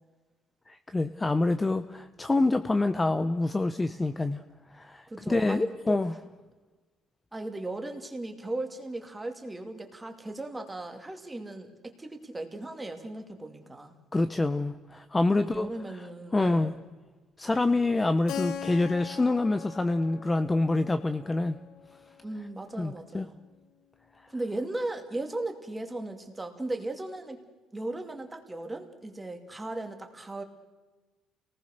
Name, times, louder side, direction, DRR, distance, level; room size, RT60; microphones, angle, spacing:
voice 1, 0.7-4.4 4.7-6.1 14.1-15.7 16.3-16.7 17.4-21.6 22.8-23.3, left 2 dB, 15° left, 10 dB, 0.7 m, -26 dB
voice 2, 5.1-6.0 7.3-13.9 15.3-16.8 22.2-23.3 24.3-27.4 27.7-30.4, right 2 dB, 10° right, 5 dB, 2.6 m, -37 dB
Keyboard (musical), 18.3-22.8, left 9 dB, 65° left, 1.7 m, -41 dB
28.5 x 19.0 x 6.6 m, 1.2 s
cardioid pair, 145°, 0 cm